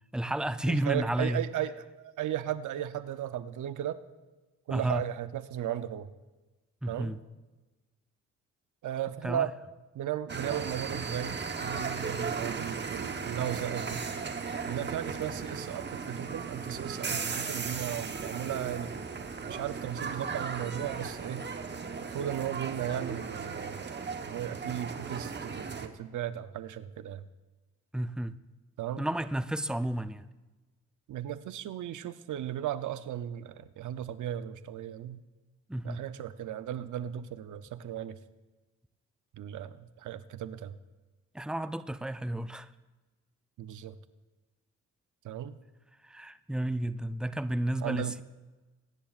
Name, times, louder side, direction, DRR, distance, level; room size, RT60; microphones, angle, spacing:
voice 1, 0.1-1.4 4.7-5.0 6.8-7.2 9.2-9.5 27.9-28.4 29.0-30.3 35.7-36.0 41.3-42.7 46.0-48.2, right 1 dB, ahead, 13 dB, 0.5 m, -32 dB
voice 2, 0.7-4.0 4.7-6.1 6.9-7.2 8.8-9.6 9.9-14.0 14.7-19.0 19.5-21.5 22.1-23.9 24.2-27.2 28.8-29.1 31.1-35.2 35.8-38.2 39.3-40.8 43.6-44.0 45.2-45.5 47.8-48.1, right 11 dB, 70° right, 13 dB, 0.7 m, -36 dB
sound 1, 10.3-25.9, right 5 dB, 35° right, 1.0 m, -36 dB
23.0 x 10.5 x 2.4 m, 1.2 s
supercardioid pair, 60°, 32 cm